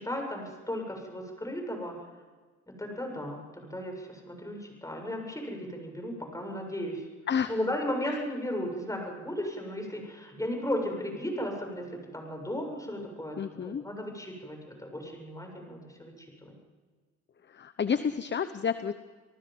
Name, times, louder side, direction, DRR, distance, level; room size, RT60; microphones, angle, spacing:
voice 1, 0.0-2.0 2.7-7.1 7.5-16.5, left 1 dB, 10° left, 2 dB, 7.7 m, -35 dB
voice 2, 13.4-13.8 17.5-18.9, left 7 dB, 35° left, 11 dB, 1.0 m, -30 dB
29.5 x 19.0 x 5.5 m, 1.4 s
cardioid pair, 90°, 30 cm